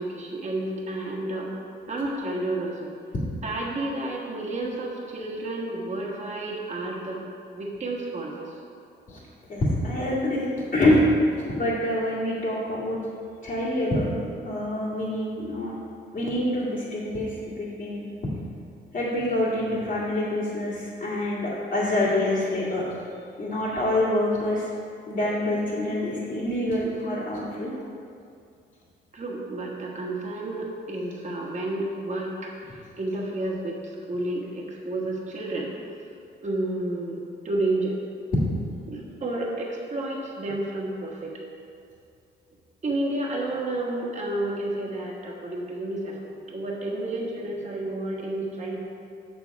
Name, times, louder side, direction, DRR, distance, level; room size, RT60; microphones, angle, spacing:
voice 1, 0.0-1.5 1.9-2.9 3.4-7.2 7.5-8.5 29.1-32.5 33.0-35.7 36.4-37.9 38.9-41.3 42.8-48.8, right 2 dB, 35° right, -3 dB, 1.6 m, -31 dB
voice 2, 9.5-10.5 10.7-13.0 13.4-14.1 14.4-15.7 16.1-18.1 18.9-22.9 23.4-24.7 25.1-27.7, left 1 dB, 45° left, -9 dB, 2.0 m, -26 dB
7.5 x 7.0 x 4.7 m, 2.4 s
cardioid pair, 90°, 20 cm